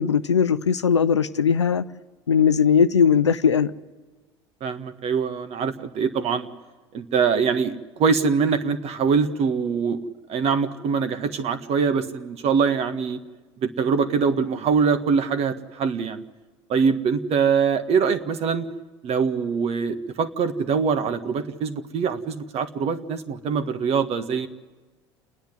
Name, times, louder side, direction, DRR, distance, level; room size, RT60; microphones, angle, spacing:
voice 1, 0.0-1.8 2.3-3.7, left 7 dB, 90° left, 0.6 m, -19 dB
voice 2, 4.6-6.5 6.9-10.0 10.3-13.2 13.6-16.2 16.7-18.7 19.0-24.5, right 6 dB, 45° right, 1.6 m, -23 dB
28.5 x 10.5 x 9.6 m
hypercardioid pair, 75°, 14 cm